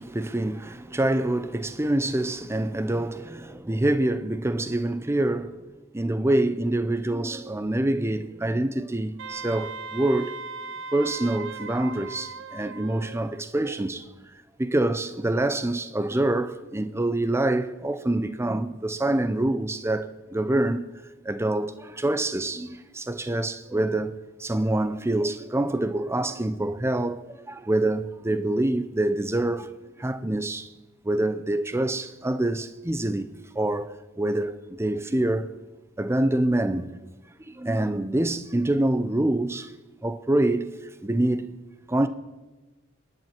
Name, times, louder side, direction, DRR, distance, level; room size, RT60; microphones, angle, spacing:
voice 1, 0.0-5.6 5.9-10.3 10.9-14.1 14.6-20.8 21.2-29.7 30.0-30.7 31.0-33.3 33.6-35.5 36.0-36.9 37.4-39.7 40.0-40.7 41.0-41.5 41.9-42.1, right 1 dB, 15° right, 0.6 m, -26 dB
Wind instrument woodwind instrument, 9.2-13.4, right 4 dB, 65° right, 0.8 m, -38 dB
26.0 x 10.5 x 4.5 m
head